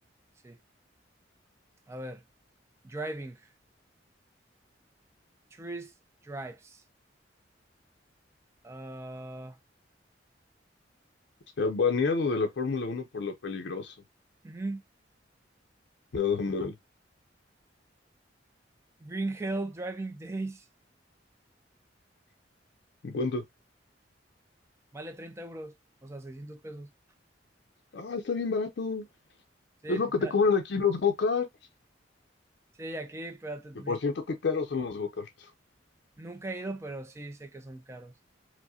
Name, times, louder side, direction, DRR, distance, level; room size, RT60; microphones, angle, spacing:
voice 1, 1.9-2.2 2.8-3.4 5.5-5.9 6.2-6.8 8.6-9.6 14.4-14.8 19.0-20.7 24.9-25.7 26.0-26.9 29.8-30.3 32.8-34.0 36.2-38.1, right 2 dB, 15° right, 0.4 m, -38 dB
voice 2, 11.6-14.0 16.1-16.7 23.0-23.4 27.9-29.0 29.9-31.5 33.9-35.5, left 4 dB, 65° left, 0.5 m, -28 dB
4.6 x 2.0 x 2.7 m
head